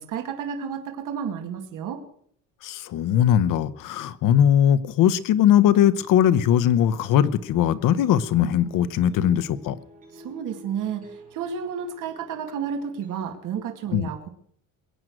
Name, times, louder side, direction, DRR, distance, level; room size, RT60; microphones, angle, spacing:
voice 1, 0.0-2.0 10.1-14.3, right 7 dB, 65° right, 2.3 m, -31 dB
voice 2, 2.6-9.8 13.9-14.1, left 10 dB, 70° left, 0.9 m, -20 dB
sound 1, 5.9-13.2, left 1 dB, 25° right, 6.3 m, -49 dB
22.0 x 9.1 x 6.3 m
cardioid pair, 155°, 33 cm